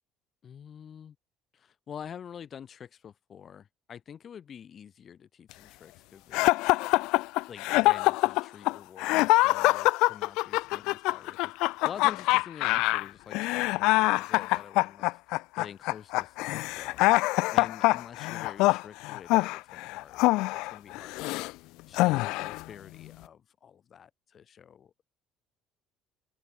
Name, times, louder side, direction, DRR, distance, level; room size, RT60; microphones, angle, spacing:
voice 1, 0.4-1.2 1.5-6.5 7.5-17.0 17.5-20.2 20.5-21.4 21.9-25.0, left 8 dB, 45° left, 5.4 m, -47 dB
sound 1, 6.3-21.5 21.9-22.6, left 22 dB, 65° left, 0.3 m, -25 dB
open air
figure-of-eight pair, 55°, 0 cm